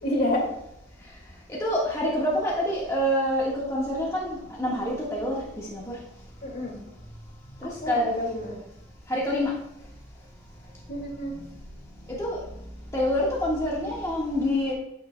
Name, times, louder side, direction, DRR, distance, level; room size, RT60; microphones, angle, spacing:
voice 1, 0.0-0.5 6.4-6.8 7.6-8.5 10.9-11.4, left 1 dB, 55° left, -1 dB, 2.2 m, -29 dB
voice 2, 1.6-5.4 5.7-5.8 7.6-8.1 8.5-8.6 9.1-9.5 12.2-12.4 12.9-14.7, equal, 15° left, -5 dB, 1.5 m, -26 dB
9.3 x 8.7 x 2.2 m, 0.81 s
head